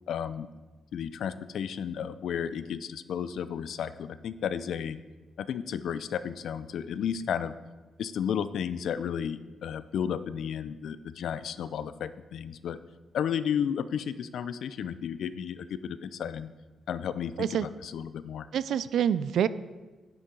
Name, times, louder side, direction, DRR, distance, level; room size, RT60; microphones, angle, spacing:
voice 1, 0.1-0.5 0.9-5.0 5.4-7.5 8.0-12.8 13.1-16.5 16.9-18.5, left 8 dB, 60° left, 14 dB, 0.4 m, -33 dB
voice 2, 18.5-19.5, right 9 dB, 65° right, 16 dB, 0.3 m, -26 dB
10.0 x 9.7 x 3.8 m, 1.2 s
wide cardioid pair, 175°, 0 cm